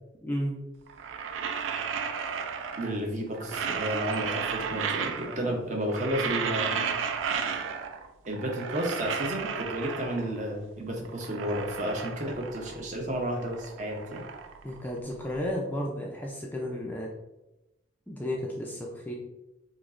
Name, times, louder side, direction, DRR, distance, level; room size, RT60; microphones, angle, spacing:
voice 1, 0.2-0.6 5.1-5.6 14.6-17.1 18.1-19.1, left 1 dB, 10° left, -2 dB, 0.3 m, -33 dB
sound 1, 0.9-3.0 3.3-5.5 5.8-8.1 8.3-10.4 10.9-12.9 13.2-15.4, right 6 dB, 85° right, 0.3 m, -33 dB
voice 2, 2.8-6.9 8.3-14.3, equal, 40° right, 1 dB, 0.6 m, -32 dB
4.8 x 2.0 x 2.4 m, 0.97 s
head